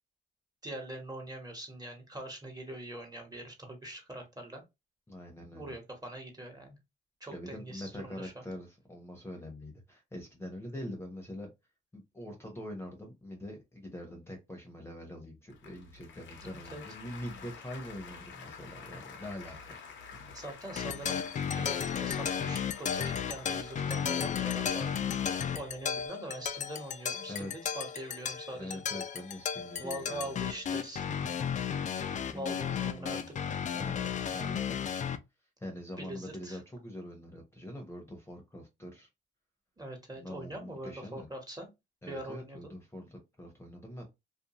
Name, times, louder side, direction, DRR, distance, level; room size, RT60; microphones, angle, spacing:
voice 1, 0.6-4.6 5.5-6.8 7.2-8.4 16.4-16.8 20.3-21.2 21.6-25.2 25.5-28.8 29.8-31.3 32.3-33.3 36.0-36.6 39.8-41.7 42.1-42.7, right 1 dB, 20° right, 1.2 m, -43 dB
voice 2, 5.1-5.7 7.3-11.5 11.9-19.8 20.1-20.3 27.3-27.8 28.5-30.3 32.1-33.3 33.7-34.9 35.6-39.1 40.1-41.3 42.0-44.0, left 1 dB, 10° left, 0.8 m, -44 dB
Applause, 15.5-26.1, left 5 dB, 75° left, 0.7 m, -50 dB
sound 1, 20.8-35.2, left 7 dB, 40° left, 0.4 m, -34 dB
2.6 x 2.3 x 2.8 m
cardioid pair, 90°, 20 cm